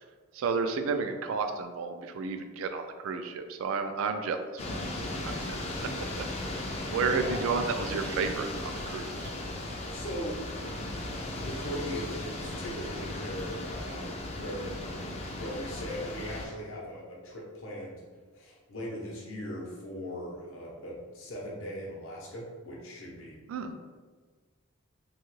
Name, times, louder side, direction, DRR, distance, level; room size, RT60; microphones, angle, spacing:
voice 1, 0.3-4.6 5.2-6.2 6.5-9.3 23.5-23.7, right 5 dB, 80° right, 7 dB, 0.3 m, -32 dB
sound 1, 4.6-16.5, left 1 dB, 30° left, 0.3 m, -36 dB
voice 2, 7.1-7.4 9.9-14.8 15.3-18.0 18.3-23.4, equal, 75° left, -4 dB, 0.7 m, -39 dB
2.7 x 2.3 x 3.0 m, 1.5 s
head